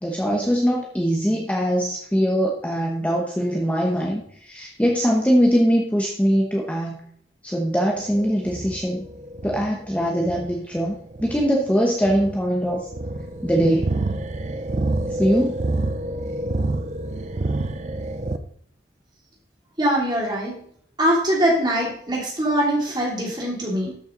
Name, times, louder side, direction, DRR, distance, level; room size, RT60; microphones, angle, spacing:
voice 1, 0.0-7.0 7.4-9.0 9.4-12.9 13.4-13.9 15.1-15.6, equal, 10° left, -1 dB, 1.0 m, -22 dB
sound 1, 8.0-18.4, right 2 dB, 40° right, 0.6 m, -28 dB
voice 2, 19.8-20.6 21.0-23.9, right 1 dB, 25° right, -3 dB, 3.2 m, -22 dB
13.0 x 6.1 x 3.9 m, 0.65 s
head